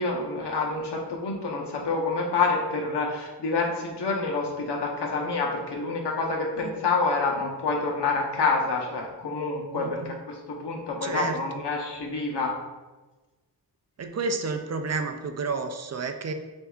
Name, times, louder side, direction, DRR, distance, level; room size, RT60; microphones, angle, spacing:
voice 1, 0.0-12.5, left 3 dB, 80° left, 0 dB, 1.0 m, -27 dB
voice 2, 9.7-10.1 11.0-11.4 14.0-16.3, right 4 dB, 40° right, 6 dB, 0.4 m, -31 dB
7.9 x 2.7 x 2.4 m, 1.2 s
wide cardioid pair, 95°, 41 cm